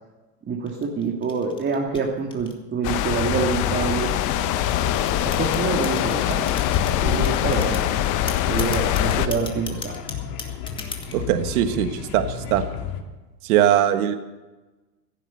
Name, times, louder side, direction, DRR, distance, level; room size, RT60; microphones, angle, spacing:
voice 1, 0.5-4.1 5.3-6.4 7.0-7.8 8.5-10.0, right 5 dB, 20° right, 0 dB, 2.1 m, -26 dB
sound 1, 0.7-3.1 3.8-6.9 7.2-7.9 8.3-11.2, left 3 dB, 10° left, 2.1 m, -37 dB
sound 2, 2.8-9.3, left 12 dB, 35° left, 1.0 m, -23 dB
sound 3, 3.1-13.0, left 8 dB, 60° left, 2.5 m, -33 dB
voice 2, 11.1-12.2 12.5-12.6 13.4-14.2, right 11 dB, 60° right, 9 dB, 1.6 m, -20 dB
16.0 x 10.5 x 6.9 m, 1.2 s
hypercardioid pair, 120°, 49 cm